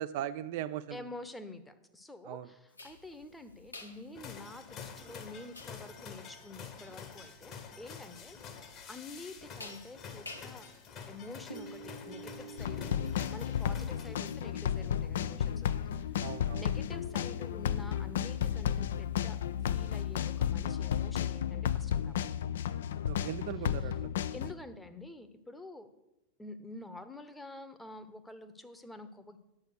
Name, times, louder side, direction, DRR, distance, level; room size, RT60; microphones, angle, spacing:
voice 1, 0.0-1.0 2.2-2.5 16.2-16.7 23.0-24.2, right 12 dB, 50° right, 11 dB, 0.3 m, -39 dB
voice 2, 0.9-10.7 11.1-11.8 12.1-16.2 16.5-19.4 19.6-22.3 23.8-23.9 24.3-25.9 26.4-29.4, left 2 dB, 5° left, 9 dB, 0.8 m, -48 dB
sound 1, 2.8-20.4, equal, 80° left, 1.0 m, -52 dB
sound 2, 4.1-14.6, left 6 dB, 35° left, 1.2 m, -48 dB
sound 3, 12.6-24.5, left 9 dB, 60° left, 0.4 m, -33 dB
9.7 x 7.0 x 6.4 m, 0.93 s
figure-of-eight pair, 90°, 0 cm